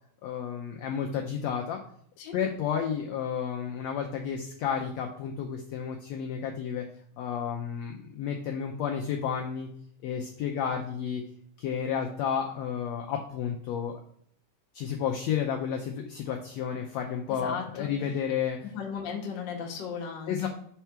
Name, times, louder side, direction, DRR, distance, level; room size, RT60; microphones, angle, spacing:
voice 1, 0.2-1.8 2.3-6.8 7.2-9.7 10.0-11.2 11.6-14.0 14.7-18.6 20.3-20.5, left 8 dB, 80° left, 2 dB, 1.6 m, -31 dB
voice 2, 17.3-17.9 18.6-20.5, left 6 dB, 55° left, 0 dB, 1.3 m, -36 dB
4.6 x 4.5 x 5.7 m, 0.65 s
omnidirectional pair, 3.6 m